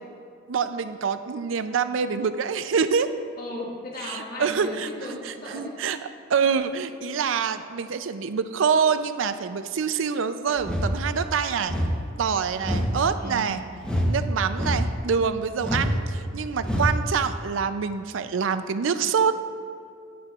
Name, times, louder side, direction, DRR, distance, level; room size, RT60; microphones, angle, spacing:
voice 1, 0.5-3.1 4.0-4.9 5.2-6.0 6.3-11.8 12.2-13.6 14.1-19.4, right 6 dB, 80° right, 11 dB, 0.5 m, -26 dB
voice 2, 3.4-5.7 12.5-13.6, left 1 dB, 50° left, -4 dB, 1.8 m, -37 dB
sound 1, 10.6-11.0 11.6-12.0 12.6-13.0 13.8-14.2 14.5-15.0 15.6-16.0 16.6-17.0, equal, 5° left, 0.9 m, -25 dB
11.0 x 10.0 x 2.4 m, 2.4 s
head